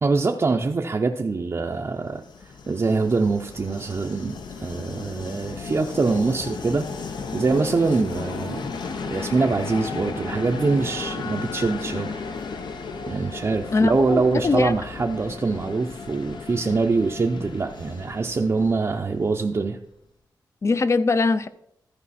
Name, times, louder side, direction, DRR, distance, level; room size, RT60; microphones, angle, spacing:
voice 1, 0.0-2.2 2.7-6.8 7.3-8.6 9.1-12.1 13.1-19.8, right 4 dB, 35° right, 0.6 m, -24 dB
Train, 2.0-19.7, left 4 dB, 75° left, 0.9 m, -35 dB
voice 2, 13.7-14.7 20.6-21.5, left 3 dB, 40° left, 0.5 m, -21 dB
13.5 x 5.0 x 4.2 m
wide cardioid pair, 105°, 8 cm